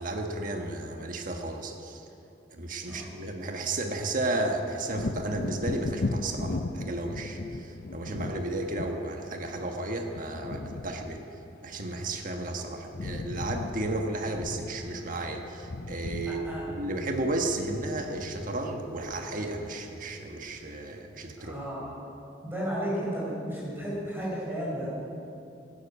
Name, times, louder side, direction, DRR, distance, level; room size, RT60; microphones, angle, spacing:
voice 1, 0.0-2.0 2.5-11.2 11.6-21.6, right 2 dB, 45° right, 3 dB, 1.3 m, -33 dB
Wind / Thunder, 4.9-12.5 12.8-20.0 20.4-20.6, left 2 dB, 50° left, 0.6 m, -37 dB
voice 2, 16.3-16.7 21.4-21.9 22.4-24.9, equal, 10° right, -7 dB, 4.3 m, -33 dB
12.5 x 12.0 x 8.1 m, 2.7 s
head